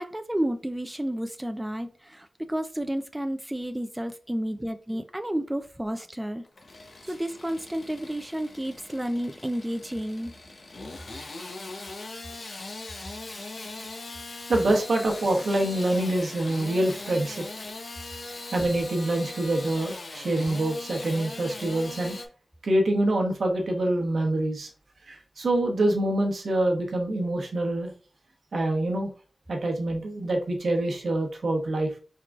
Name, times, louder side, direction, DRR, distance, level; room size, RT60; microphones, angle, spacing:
voice 1, 0.0-6.4 7.1-10.3, right 1 dB, 10° right, 6 dB, 0.4 m, -31 dB
Engine starting / Sawing, 6.4-22.3, left 2 dB, 60° left, 0.8 m, -40 dB
voice 2, 14.5-17.5 18.5-22.2 22.6-24.7 25.1-27.9 28.5-29.1 29.5-31.9, right 1 dB, 75° right, 2 dB, 1.0 m, -25 dB
4.6 x 3.7 x 2.4 m, 0.38 s
wide cardioid pair, 70°, 0 cm